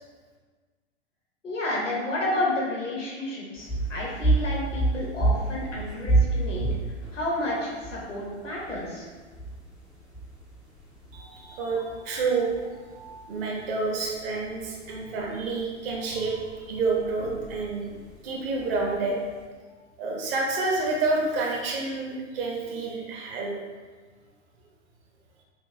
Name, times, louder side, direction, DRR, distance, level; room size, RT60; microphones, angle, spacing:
voice 1, 1.4-6.7 7.1-9.1, left 1 dB, 90° left, -4 dB, 1.2 m, -30 dB
sound 1, 3.6-19.4, right 2 dB, ahead, 0.3 m, -31 dB
voice 2, 11.1-18.0 18.2-19.4 20.0-23.6, right 3 dB, 50° right, -1 dB, 0.9 m, -29 dB
5.4 x 2.3 x 2.2 m, 1.4 s
figure-of-eight pair, 100°, 36 cm